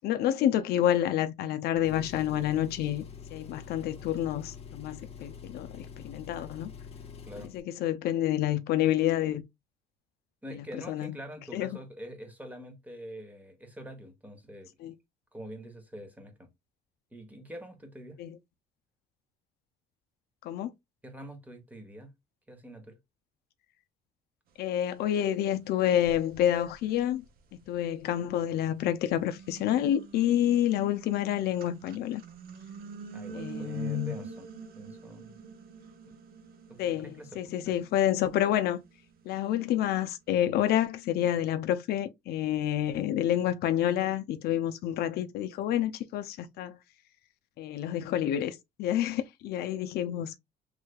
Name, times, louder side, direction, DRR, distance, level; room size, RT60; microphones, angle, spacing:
voice 1, 0.0-3.0 3.3-6.7 7.4-9.4 10.5-11.2 11.5-11.7 14.8-14.9 18.2-18.4 20.4-20.7 24.6-27.2 27.7-32.2 33.3-34.2 36.8-38.8 39.3-46.8 47.6-50.4, left 11 dB, 70° left, 0.4 m, -28 dB
Engine, 1.8-7.6, left 6 dB, 35° left, 0.7 m, -46 dB
voice 2, 7.2-7.5 10.4-14.7 15.3-16.5 17.1-18.2 21.0-22.1 22.5-23.0 33.1-34.5 34.7-35.4 36.7-37.3 37.6-37.8, equal, 10° right, 1.0 m, -45 dB
sound 1, 25.3-25.4 25.9-28.3 28.8-40.1, right 5 dB, 60° right, 0.6 m, -46 dB
3.3 x 3.1 x 2.2 m
cardioid pair, 110°, 17 cm